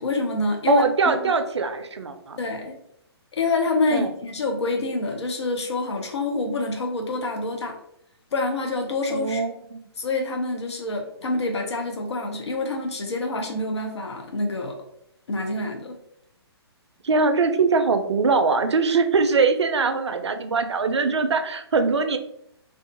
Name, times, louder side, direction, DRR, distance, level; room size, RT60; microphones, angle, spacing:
voice 1, 0.0-1.3 2.4-2.8 3.3-7.8 8.3-9.4 10.0-14.7 15.3-16.0, left 2 dB, 80° left, 2 dB, 0.5 m, -26 dB
voice 2, 0.7-2.4 3.9-4.1 9.1-9.8 17.0-22.2, right 4 dB, 85° right, 8 dB, 0.4 m, -22 dB
2.4 x 2.3 x 2.4 m, 0.73 s
figure-of-eight pair, 130°, 14 cm